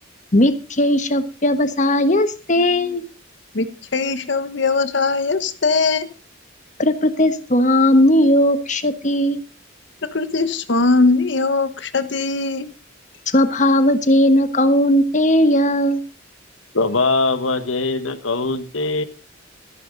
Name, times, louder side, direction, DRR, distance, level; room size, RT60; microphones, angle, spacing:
voice 1, 0.3-3.0 6.8-9.4 13.3-16.0, left 1 dB, 40° left, 1.3 m, -17 dB
voice 2, 3.9-6.1 10.0-12.7, left 3 dB, 60° left, 1.1 m, -20 dB
voice 3, 16.7-19.0, left 3 dB, 85° left, 1.4 m, -21 dB
14.0 x 12.0 x 4.0 m
head